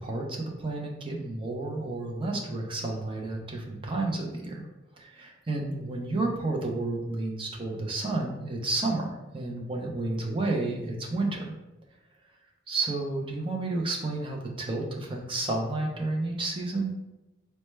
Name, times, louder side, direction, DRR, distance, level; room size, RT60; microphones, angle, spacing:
voice 1, 0.0-4.6 5.0-11.4 12.7-16.9, right 2 dB, 30° right, -1 dB, 0.6 m, -31 dB
4.3 x 2.2 x 3.2 m, 0.97 s
head